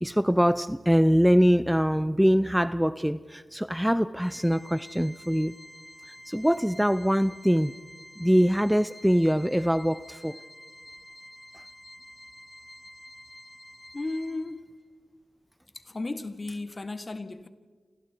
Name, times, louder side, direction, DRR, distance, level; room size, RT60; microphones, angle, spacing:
voice 1, 0.0-5.6 6.3-7.7 8.2-10.4, equal, 5° right, 0.6 m, -23 dB
Organ, 4.2-14.8, equal, 20° left, 2.5 m, -49 dB
voice 2, 13.9-14.7 15.7-17.5, left 2 dB, 40° left, 1.7 m, -34 dB
30.0 x 26.5 x 4.6 m
cardioid pair, 40°, 0 cm